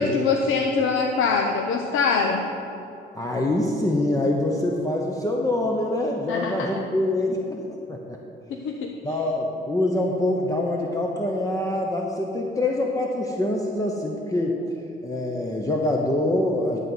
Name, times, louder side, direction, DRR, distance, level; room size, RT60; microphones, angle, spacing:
voice 1, 0.0-2.5 6.3-6.8 8.5-9.2, left 4 dB, 85° left, 2 dB, 0.7 m, -24 dB
voice 2, 3.1-8.2 9.0-14.6 15.0-16.8, left 1 dB, 15° left, 0 dB, 0.9 m, -25 dB
11.5 x 4.1 x 7.8 m, 2.9 s
cardioid pair, 90°, 20 cm